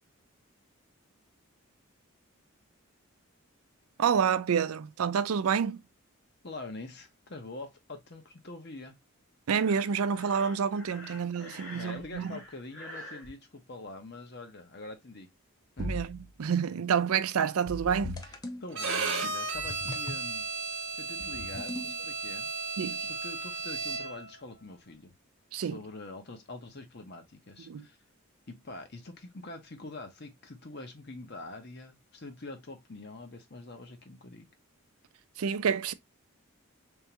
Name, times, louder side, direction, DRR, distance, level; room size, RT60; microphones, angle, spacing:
voice 1, 4.0-5.8 9.5-12.4 15.8-18.2 19.2-19.3 22.8-23.1 25.5-25.8 27.7-27.9 35.4-35.9, right 7 dB, 85° right, 0.4 m, -28 dB
voice 2, 6.4-9.0 11.4-15.3 15.8-16.0 18.2-18.3 18.6-22.5 23.1-25.1 25.6-28.0 28.5-34.5, left 2 dB, 50° left, 0.9 m, -45 dB
Breathing, 9.6-13.3, left 1 dB, 70° left, 1.5 m, -47 dB
sound 1, 15.8-16.3 17.7-18.6 19.5-20.3 21.2-22.1, left 1 dB, 15° left, 0.5 m, -39 dB
Bowed string instrument, 18.7-24.3, right 4 dB, 60° right, 1.0 m, -34 dB
3.6 x 3.4 x 2.8 m
head